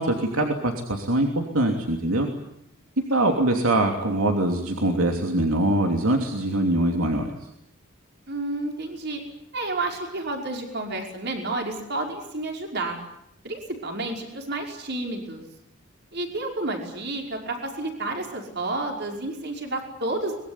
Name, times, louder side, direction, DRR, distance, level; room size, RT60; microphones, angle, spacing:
voice 1, 0.0-2.3 3.1-7.3, right 1 dB, 75° right, 3 dB, 3.0 m, -23 dB
voice 2, 8.3-9.2 9.5-13.0 13.4-15.4 16.1-20.3, right 2 dB, 50° right, 2 dB, 5.4 m, -30 dB
24.0 x 22.0 x 9.9 m, 0.77 s
head